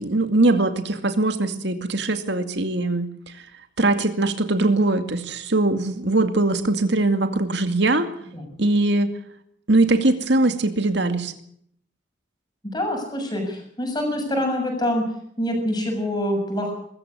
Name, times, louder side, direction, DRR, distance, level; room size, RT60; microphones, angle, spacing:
voice 1, 0.0-3.4 3.8-8.1 8.6-9.1 9.7-11.3, right 2 dB, 60° right, 8 dB, 2.3 m, -21 dB
voice 2, 12.7-15.0 15.4-16.7, left 1 dB, 20° left, 3 dB, 7.1 m, -25 dB
22.0 x 14.5 x 9.7 m, 0.70 s
head